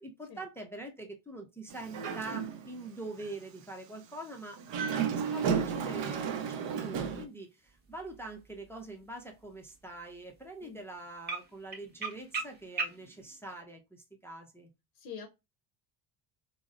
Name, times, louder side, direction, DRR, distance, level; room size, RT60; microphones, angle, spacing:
voice 1, 0.0-4.6 4.9-14.7, right 2 dB, 5° left, 0.4 m, -44 dB
Dog, 1.7-2.8 3.2-3.3 4.6-7.2, right 7 dB, 65° right, 0.6 m, -33 dB
sound 1, 5.1-13.6, right 4 dB, 20° right, 0.9 m, -44 dB
voice 2, 15.0-15.3, left 6 dB, 50° left, 0.6 m, -44 dB
3.9 x 2.0 x 2.4 m
cardioid pair, 115°, 47 cm